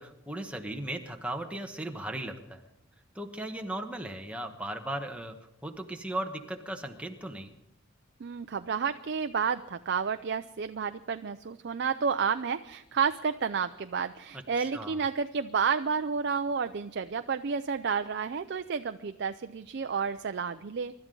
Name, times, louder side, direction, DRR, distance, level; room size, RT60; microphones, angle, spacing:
voice 1, 0.0-2.6 3.1-5.3 5.6-7.5 14.6-15.0, right 1 dB, 5° right, 4 dB, 1.1 m, -37 dB
voice 2, 8.2-20.9, right 6 dB, 50° right, 9 dB, 0.4 m, -31 dB
25.0 x 12.5 x 3.8 m, 0.83 s
head